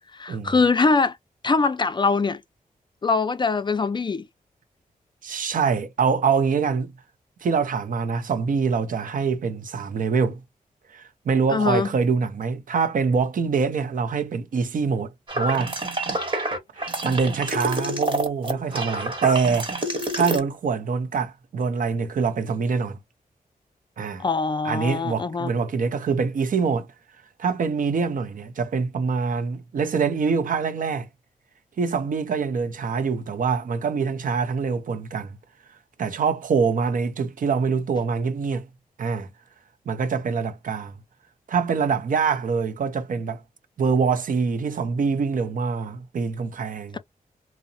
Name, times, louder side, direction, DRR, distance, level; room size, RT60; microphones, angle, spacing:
voice 1, 0.1-1.2 1.4-2.4 3.0-4.3 11.5-11.9 24.2-25.5, left 4 dB, 30° left, 0.4 m, -22 dB
voice 2, 5.2-6.9 7.4-10.4 10.9-15.7 16.8-19.7 20.1-23.0 24.0-24.2 24.6-26.9 27.4-31.1 31.8-35.4 36.0-38.7 39.0-39.3 39.9-40.9 41.5-43.4 43.8-47.0, right 5 dB, 65° right, 0.5 m, -24 dB
sound 1, 15.3-20.4, right 1 dB, 35° right, 1.0 m, -28 dB
2.7 x 2.0 x 2.6 m
cardioid pair, 75°, 15 cm